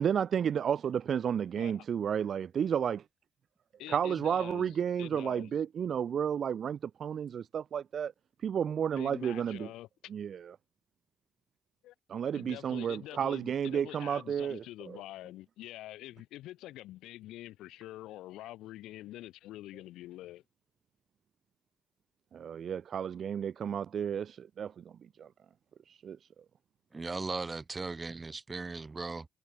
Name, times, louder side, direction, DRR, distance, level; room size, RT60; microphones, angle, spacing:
voice 1, 0.0-3.0 3.9-8.1 8.4-9.7 10.1-10.5 12.1-15.0 22.3-25.3 26.0-26.2, right 8 dB, 55° right, 0.4 m, -32 dB
voice 2, 3.8-5.5 9.0-9.9 11.8-11.9 12.3-20.4, left 15 dB, 90° left, 5.1 m, -46 dB
voice 3, 26.9-29.3, right 3 dB, 25° right, 1.3 m, -37 dB
cardioid pair, 90°, 0 cm